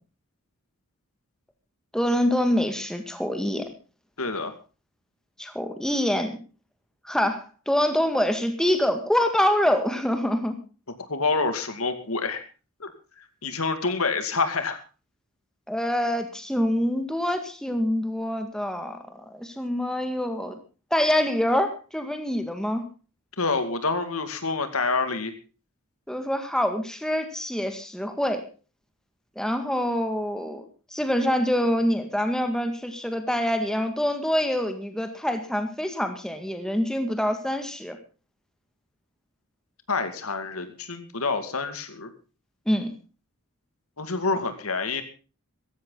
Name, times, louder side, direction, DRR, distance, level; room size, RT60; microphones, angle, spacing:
voice 1, 1.9-3.7 5.4-6.4 7.0-10.6 15.7-20.6 20.9-22.9 26.1-28.5 29.4-30.6 30.9-38.0 42.7-42.9, equal, 5° left, 6 dB, 2.0 m, -25 dB
voice 2, 4.2-4.5 11.1-12.4 12.8-12.9 13.2-14.8 23.4-25.3 39.9-42.1 44.0-45.0, left 4 dB, 80° left, 9 dB, 2.3 m, -27 dB
16.0 x 15.0 x 4.0 m, 0.35 s
head